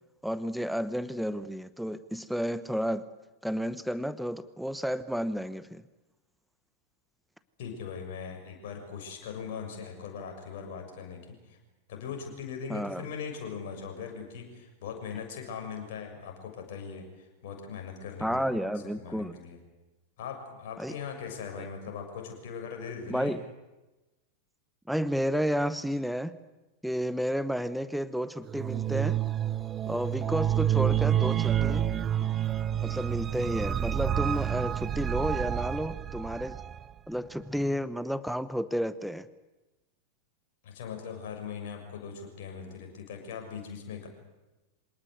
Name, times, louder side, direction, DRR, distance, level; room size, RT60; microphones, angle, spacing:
voice 1, 0.2-3.0 3.4-5.8 12.7-13.0 18.2-19.4 20.8-21.0 23.1-23.4 24.9-26.4 26.8-29.2 29.9-31.9 32.8-36.6 37.1-39.3, equal, ahead, 15 dB, 1.0 m, -31 dB
voice 2, 7.6-11.6 11.9-19.6 20.2-23.4 40.6-44.1, left 6 dB, 55° left, 3 dB, 6.9 m, -40 dB
sound 1, 28.5-36.8, right 10 dB, 25° right, 0.9 m, -28 dB
26.0 x 18.5 x 9.5 m, 1.1 s
figure-of-eight pair, 90°, 0 cm